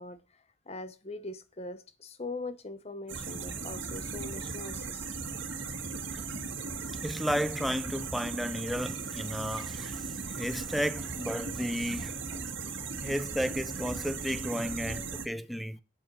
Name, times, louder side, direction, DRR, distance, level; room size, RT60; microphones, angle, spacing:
voice 1, 0.0-5.1 12.7-12.8, left 2 dB, 30° left, 0.9 m, -42 dB
sound 1, 3.1-15.3, right 4 dB, 65° right, 1.7 m, -37 dB
voice 2, 7.0-12.5 13.0-15.8, equal, ahead, 0.4 m, -33 dB
8.5 x 5.9 x 6.3 m
head